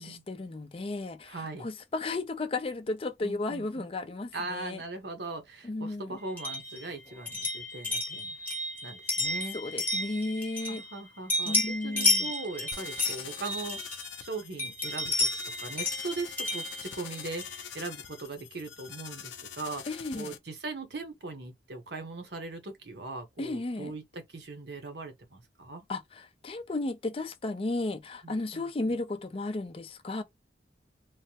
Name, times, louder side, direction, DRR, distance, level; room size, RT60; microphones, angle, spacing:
voice 1, 0.0-4.8 5.6-6.2 9.5-10.8 11.5-12.3 19.9-20.3 23.4-23.9 25.9-30.2, left 2 dB, 30° left, 0.5 m, -34 dB
voice 2, 1.2-1.7 3.2-3.9 4.3-8.4 8.8-9.6 10.7-13.8 14.2-25.8 28.2-29.0, right 3 dB, 70° right, 1.0 m, -40 dB
sound 1, 6.4-11.0 11.3-14.2 14.6-17.6, left 2 dB, 10° left, 0.9 m, -32 dB
sound 2, 12.7-20.4, left 8 dB, 90° left, 0.5 m, -44 dB
3.2 x 2.1 x 2.8 m
head